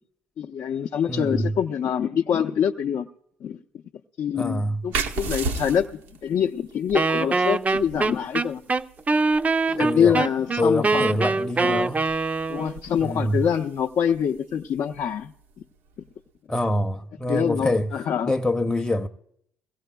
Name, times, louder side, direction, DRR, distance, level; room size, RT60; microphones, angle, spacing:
voice 1, 0.4-3.1 3.4-3.6 4.2-8.6 9.7-11.2 11.6-11.9 12.5-15.3 17.3-18.3, left 8 dB, 60° left, 0.6 m, -25 dB
voice 2, 1.1-1.5 4.3-4.8 9.8-10.2 10.6-12.1 13.0-13.5 16.5-17.9 18.3-19.1, left 1 dB, 10° left, 0.7 m, -25 dB
sound 1, 4.9-16.2, right 4 dB, 85° right, 0.9 m, -37 dB
Wind instrument woodwind instrument, 6.9-12.8, right 3 dB, 25° right, 0.5 m, -23 dB
22.0 x 16.5 x 2.3 m
hypercardioid pair, 55°, 6 cm